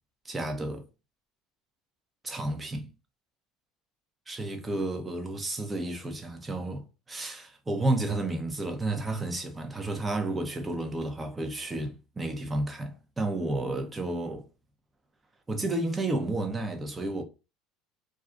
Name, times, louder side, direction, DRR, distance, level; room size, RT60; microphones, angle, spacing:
voice 1, 0.2-0.8 2.2-2.9 4.3-14.4 15.5-17.2, right 2 dB, 20° right, 0.8 m, -31 dB
2.5 x 2.3 x 3.7 m
hypercardioid pair, 85°, 0 cm